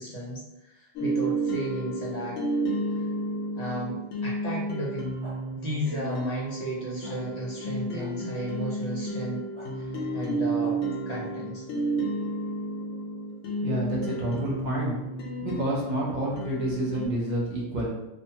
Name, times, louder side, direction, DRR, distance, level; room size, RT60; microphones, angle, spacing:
voice 1, 0.0-2.4 2.9-3.0 3.6-5.1 5.5-9.4 9.7-10.8 11.1-11.6, right 1 dB, 40° left, -5 dB, 0.7 m, -34 dB
sound 1, 1.0-17.1, right 1 dB, 80° left, 0.9 m, -32 dB
sound 2, 5.2-5.3 6.1-6.2 7.0-7.1 8.0-8.1 9.5-9.7 10.6-10.7, right 1 dB, 5° left, 1.2 m, -46 dB
voice 2, 13.4-15.1 15.4-17.9, right 1 dB, 50° right, -4 dB, 0.6 m, -29 dB
2.5 x 2.2 x 2.7 m, 0.93 s
omnidirectional pair, 1.2 m